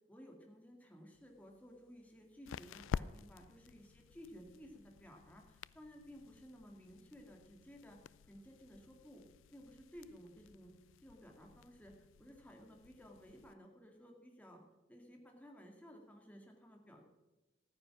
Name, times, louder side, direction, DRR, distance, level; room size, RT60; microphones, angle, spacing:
voice 1, 0.1-10.7 11.0-14.6 14.9-17.0, equal, 10° left, 1 dB, 2.1 m, -56 dB
sound 1, 1.1-13.5, left 7 dB, 70° left, 0.3 m, -50 dB
14.0 x 9.6 x 6.1 m, 1.1 s
head